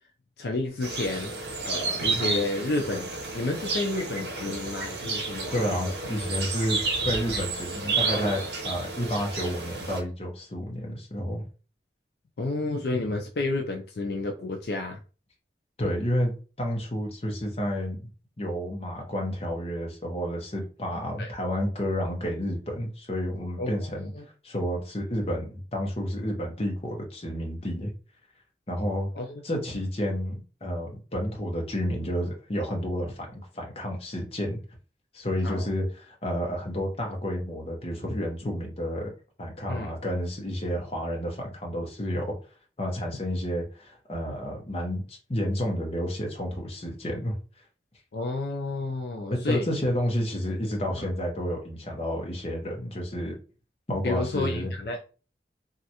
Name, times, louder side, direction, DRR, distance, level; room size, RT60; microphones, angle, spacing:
voice 1, 0.4-1.3 1.6-5.9 12.4-15.0 21.2-21.3 23.6-24.2 29.2-29.4 35.4-35.7 39.7-39.9 48.1-49.7 50.9-51.1 54.0-55.0, left 2 dB, 60° left, 2 dB, 0.4 m, -31 dB
sound 1, 0.8-10.0, right 3 dB, 65° right, 0.8 m, -31 dB
voice 2, 5.5-11.4 15.8-16.3 16.6-18.1 18.4-24.1 24.4-27.9 28.7-29.1 29.4-34.6 35.1-39.1 39.4-42.3 42.8-47.4 49.3-53.4 53.9-54.7, equal, 35° left, 0 dB, 0.8 m, -30 dB
3.1 x 2.5 x 2.8 m, 0.35 s
head